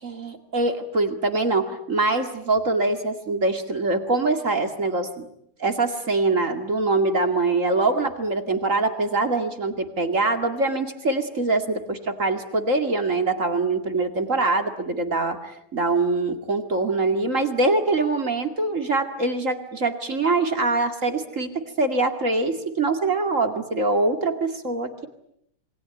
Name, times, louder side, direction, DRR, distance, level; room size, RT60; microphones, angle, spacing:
voice 1, 0.0-5.3 5.6-21.5 21.8-25.1, right 3 dB, 35° right, 7 dB, 2.6 m, -24 dB
28.0 x 23.5 x 9.0 m, 0.73 s
omnidirectional pair, 2.4 m